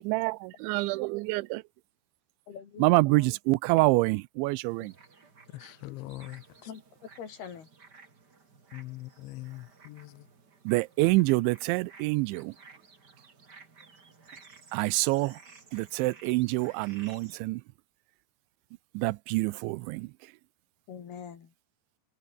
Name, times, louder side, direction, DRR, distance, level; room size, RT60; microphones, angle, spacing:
voice 1, 0.0-1.6 2.8-4.9 10.7-12.5 14.7-15.4 15.7-17.6 18.9-20.1, right 23 dB, 85° right, 2.9 m, -26 dB
voice 2, 2.5-3.3 4.8-4.9 6.7-7.7 20.9-21.5, left 7 dB, 60° left, 4.8 m, -44 dB
sound 1, 4.7-17.4, right 4 dB, 25° right, 2.8 m, -55 dB
voice 3, 5.5-6.4 8.7-10.2, left 19 dB, 80° left, 3.2 m, -42 dB
omnidirectional pair, 5.4 m